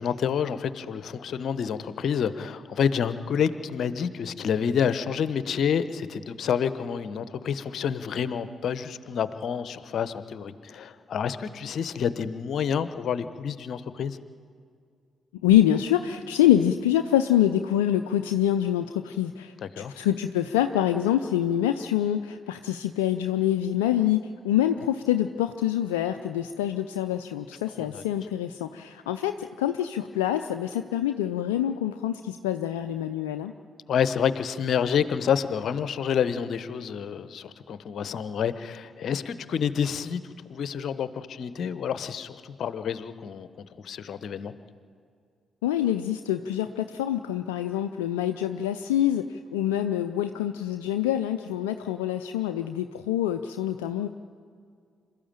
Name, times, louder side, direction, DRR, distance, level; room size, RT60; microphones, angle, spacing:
voice 1, 0.0-14.2 19.6-19.9 27.8-28.0 33.9-40.2 40.5-44.5, left 7 dB, 60° left, 13 dB, 1.0 m, -28 dB
voice 2, 15.4-24.2 24.4-33.5 45.6-54.1, left 11 dB, 80° left, 8 dB, 0.5 m, -25 dB
26.5 x 13.5 x 9.1 m, 2.2 s
figure-of-eight pair, 40°, 0 cm